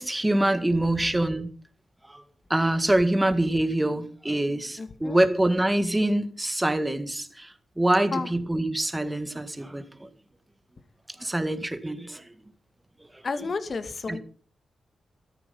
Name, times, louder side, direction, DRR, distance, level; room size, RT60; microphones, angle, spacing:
voice 1, 0.0-1.5 2.5-10.1 11.2-12.2 14.1-14.2, right 1 dB, 10° right, 10 dB, 1.9 m, -25 dB
voice 2, 0.8-1.2 4.8-5.2 8.1-8.3 13.2-14.2, left 4 dB, 45° left, 10 dB, 2.1 m, -32 dB
14.0 x 13.5 x 5.4 m, 0.42 s
cardioid pair, 95°, 0 cm